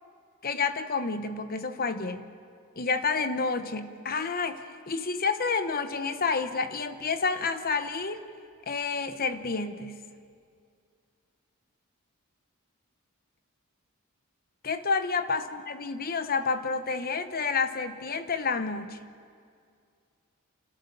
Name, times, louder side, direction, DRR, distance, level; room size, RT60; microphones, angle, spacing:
voice 1, 0.4-2.2 2.8-8.2 8.7-10.0 14.6-19.0, left 4 dB, 45° left, 9 dB, 1.0 m, -29 dB
28.5 x 13.5 x 6.8 m, 2.2 s
head